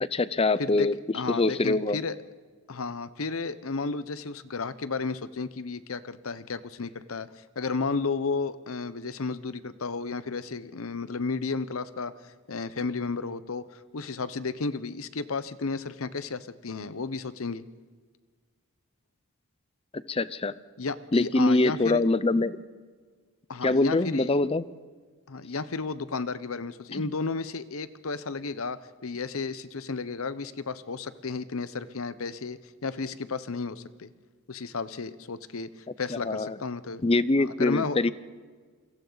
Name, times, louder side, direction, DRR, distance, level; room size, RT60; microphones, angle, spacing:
voice 1, 0.0-0.9 1.3-2.0 20.1-20.5 21.1-22.6 23.6-24.6 26.9-27.0 36.1-36.6 37.0-38.1, left 2 dB, 25° left, 16 dB, 0.6 m, -24 dB
voice 2, 1.1-2.2 2.7-17.6 20.8-22.0 23.5-24.3 25.3-34.1 34.5-37.0 37.4-38.1, left 4 dB, 75° left, 14 dB, 0.9 m, -33 dB
28.5 x 22.5 x 4.0 m, 1.5 s
head